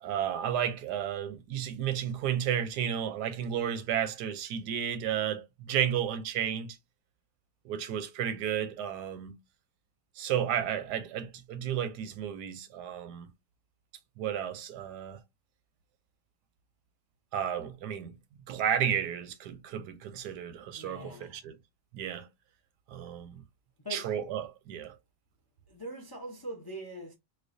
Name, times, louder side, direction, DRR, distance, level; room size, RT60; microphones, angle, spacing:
voice 1, 0.0-6.8 7.6-9.4 10.2-13.3 14.2-15.2 17.3-18.2 18.5-21.5 21.9-22.3 22.9-23.4 23.9-24.9, right 9 dB, 85° right, 1.2 m, -32 dB
voice 2, 20.7-21.5 23.8-24.1 25.7-27.1, right 1 dB, 30° left, 0.4 m, -42 dB
4.4 x 2.3 x 2.5 m
omnidirectional pair, 1.7 m